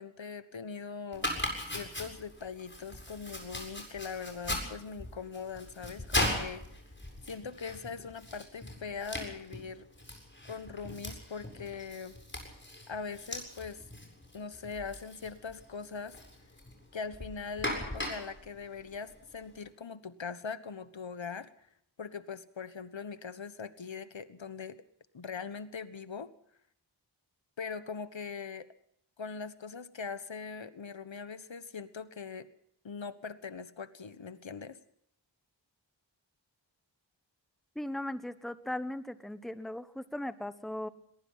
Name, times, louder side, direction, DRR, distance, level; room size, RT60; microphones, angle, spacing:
voice 1, 0.0-6.6 7.3-9.9 10.4-12.2 12.9-13.8 14.3-16.2 16.9-21.5 22.0-24.8 25.1-26.3 27.6-28.7 29.2-32.5 32.8-34.8, left 5 dB, 75° left, 13 dB, 1.4 m, -41 dB
Domestic sounds home sounds, 1.1-19.6, left 1 dB, 25° left, 7.7 m, -39 dB
voice 2, 37.7-40.9, left 1 dB, ahead, 12 dB, 1.2 m, -38 dB
22.0 x 21.0 x 5.7 m, 0.69 s
wide cardioid pair, 60°, 46 cm